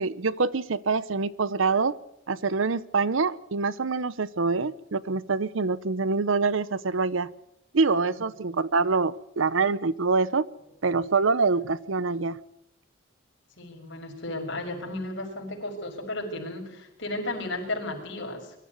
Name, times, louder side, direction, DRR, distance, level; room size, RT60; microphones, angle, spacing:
voice 1, 0.0-1.9 2.3-7.3 7.7-10.5 10.8-12.4, right 4 dB, 70° right, 19 dB, 0.7 m, -25 dB
voice 2, 13.6-18.6, left 2 dB, 55° left, 1 dB, 5.9 m, -34 dB
23.5 x 13.5 x 9.4 m, 0.79 s
head